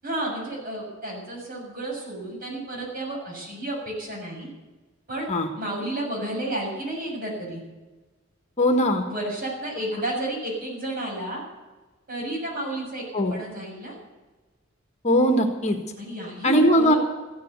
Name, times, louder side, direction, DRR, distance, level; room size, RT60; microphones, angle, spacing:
voice 1, 0.0-4.5 5.1-5.3 5.6-7.6 9.1-11.4 12.1-14.0 16.0-17.0, right 1 dB, 45° right, -2 dB, 7.0 m, -31 dB
voice 2, 8.6-9.0 13.1-13.3 15.0-15.8 16.4-16.9, equal, 35° left, 5 dB, 1.5 m, -20 dB
15.0 x 10.5 x 8.1 m, 1.2 s
head